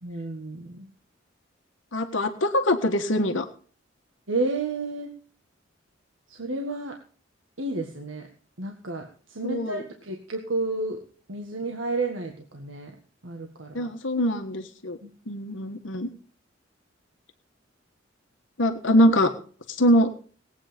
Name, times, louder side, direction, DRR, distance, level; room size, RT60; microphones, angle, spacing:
voice 1, 0.0-0.9 4.3-5.1 6.3-6.9 7.6-8.2 8.6-11.0 11.3-12.9 13.2-13.9 15.0-15.1, right 2 dB, 90° right, 2 dB, 1.7 m, -31 dB
voice 2, 1.9-3.5 9.4-9.8 13.7-15.0 15.3-16.1 18.6-19.3 19.7-20.1, equal, 75° left, 7 dB, 1.5 m, -23 dB
18.5 x 9.0 x 5.2 m, 0.42 s
head